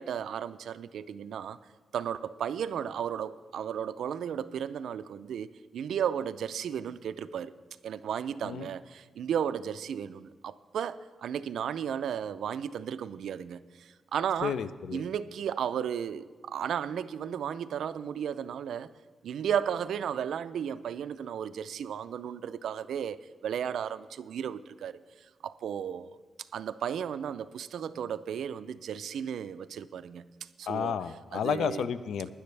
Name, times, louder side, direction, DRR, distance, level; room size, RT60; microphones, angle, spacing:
voice 1, 0.0-1.6 1.9-7.5 7.8-14.6 14.9-18.9 19.2-25.0 25.4-26.2 26.5-30.3 30.6-31.0 31.3-31.9, right 8 dB, 70° right, 14 dB, 0.4 m, -34 dB
voice 2, 14.4-15.0 30.7-32.3, left 7 dB, 75° left, 13 dB, 0.5 m, -31 dB
19.0 x 10.5 x 3.3 m, 1.5 s
wide cardioid pair, 175°, 0 cm